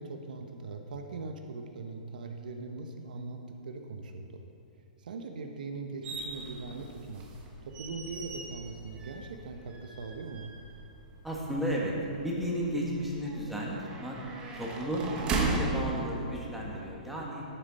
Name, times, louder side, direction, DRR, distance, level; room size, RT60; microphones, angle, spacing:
voice 1, 0.0-4.4 5.0-7.3 7.6-10.5, right 3 dB, 75° right, 4 dB, 0.9 m, -41 dB
sound 1, 6.0-16.9, right 3 dB, 20° right, 1.2 m, -38 dB
voice 2, 11.2-14.2 14.5-17.4, equal, 5° right, -4 dB, 1.6 m, -33 dB
11.0 x 8.8 x 4.2 m, 2.7 s
hypercardioid pair, 150°, 5 cm